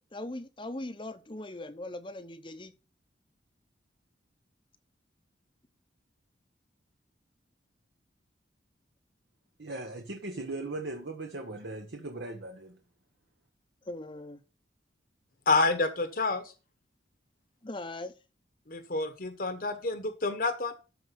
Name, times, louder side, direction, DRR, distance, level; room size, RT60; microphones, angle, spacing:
voice 1, 0.0-2.7 13.8-14.4 17.6-18.1, left 1 dB, 25° left, 0.8 m, -40 dB
voice 2, 9.6-12.8, right 2 dB, 65° right, 1.2 m, -38 dB
voice 3, 15.5-16.5 18.7-20.7, left 3 dB, 50° left, 1.1 m, -28 dB
13.0 x 4.8 x 5.7 m
head